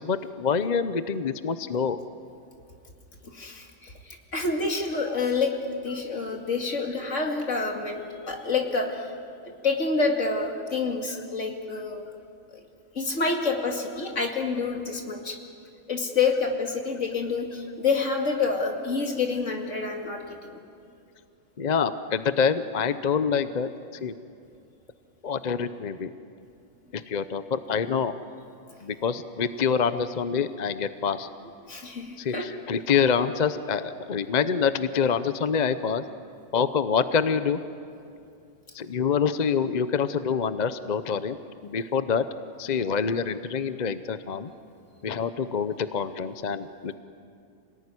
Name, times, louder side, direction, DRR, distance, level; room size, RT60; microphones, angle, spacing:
voice 1, 0.0-2.0 21.6-23.7 24.0-24.1 25.2-26.1 26.9-28.1 28.8-31.3 32.2-36.0 36.5-37.6 38.7-41.4 41.6-42.2 42.6-44.5 45.0-46.9, left 6 dB, 40° left, 11 dB, 0.7 m, -26 dB
voice 2, 3.2-9.1 9.4-12.1 12.5-12.6 12.9-15.4 15.9-20.5 31.7-32.5, left 4 dB, 65° left, 2 dB, 2.8 m, -28 dB
27.0 x 18.5 x 9.8 m, 2.4 s
omnidirectional pair, 1.4 m